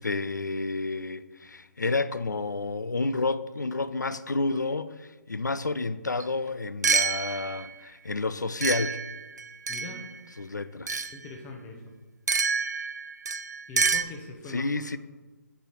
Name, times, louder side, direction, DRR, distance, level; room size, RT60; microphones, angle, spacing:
voice 1, 0.0-9.0 10.4-11.1 14.5-15.0, left 3 dB, 85° left, 0.4 m, -30 dB
sound 1, 6.2-6.3 6.8-7.7 8.6-10.1 10.9-11.2 12.3-14.0, right 5 dB, 75° right, 0.4 m, -27 dB
voice 2, 9.7-10.1 11.1-12.0 13.7-14.7, left 3 dB, 15° left, 0.7 m, -41 dB
5.1 x 4.7 x 5.8 m
figure-of-eight pair, 135°, 9 cm